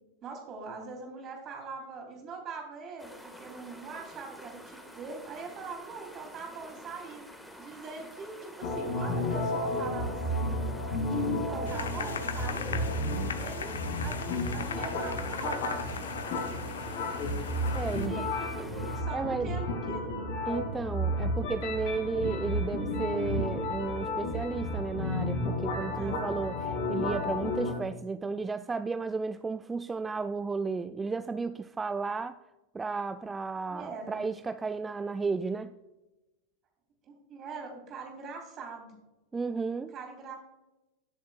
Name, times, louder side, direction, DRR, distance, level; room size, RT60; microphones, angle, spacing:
voice 1, 0.2-7.2 7.6-10.7 11.1-12.9 13.4-15.8 17.9-20.1 25.9-26.3 33.7-34.2 37.0-38.9 39.7-40.3, right 4 dB, 30° right, 1 dB, 3.4 m, -42 dB
sound 1, 3.0-19.0, equal, 5° left, 1.7 m, -49 dB
sound 2, 8.6-27.7, left 1 dB, 50° left, 2.9 m, -32 dB
sound 3, 11.6-18.1, left 7 dB, 65° left, 0.7 m, -39 dB
voice 2, 17.7-18.3 19.1-19.5 20.5-32.4 32.7-35.7 39.3-39.9, right 4 dB, 15° right, 11 dB, 0.3 m, -33 dB
20.5 x 7.1 x 2.4 m, 1.0 s
figure-of-eight pair, 90°, 0 cm